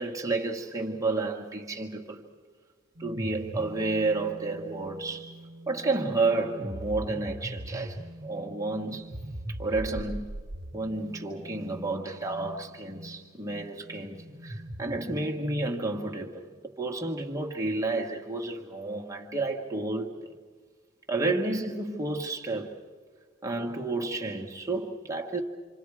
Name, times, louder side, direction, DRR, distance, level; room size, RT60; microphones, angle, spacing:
voice 1, 0.0-2.3 3.0-5.4 5.7-10.3 10.7-20.3 21.1-22.8 23.4-25.4, right 2 dB, 15° right, 1.6 m, -31 dB
sound 1, 3.0-15.8, right 1 dB, 55° right, 1.2 m, -41 dB
27.5 x 27.0 x 4.9 m
head